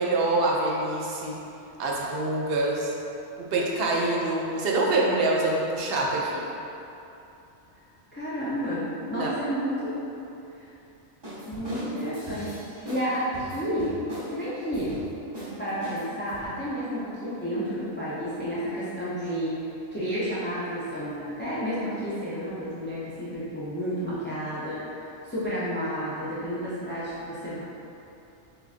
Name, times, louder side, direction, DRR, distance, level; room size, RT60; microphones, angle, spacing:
voice 1, 0.0-1.4 1.8-2.9 3.5-6.5 9.1-9.3, right 2 dB, 60° right, -2 dB, 0.7 m, -25 dB
voice 2, 8.1-10.0 10.6-10.7 11.4-12.6 12.9-13.9 14.3-15.0 15.4-19.6 19.9-24.8 25.2-27.6, equal, 15° left, -11 dB, 0.4 m, -31 dB
sound 1, 11.2-13.1 13.3-14.3 14.7-15.0 15.3-15.5 15.8-16.5, equal, 25° right, 0.9 m, -39 dB
6.5 x 2.4 x 2.5 m, 2.8 s
omnidirectional pair, 1.3 m